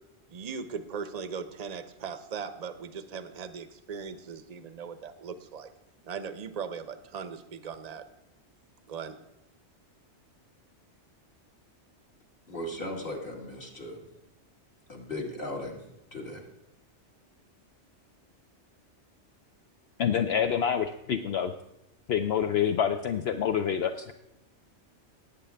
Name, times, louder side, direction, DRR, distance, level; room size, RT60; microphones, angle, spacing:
voice 1, 0.3-5.7 6.0-8.0 8.9-9.2, right 6 dB, 40° right, 11 dB, 0.7 m, -39 dB
voice 2, 12.5-14.0 14.9-15.8 16.1-16.4, left 1 dB, 50° left, -1 dB, 2.2 m, -37 dB
voice 3, 20.0-21.5 22.1-24.1, left 8 dB, 65° left, 7 dB, 0.8 m, -27 dB
18.5 x 8.3 x 3.4 m, 0.86 s
omnidirectional pair, 1.2 m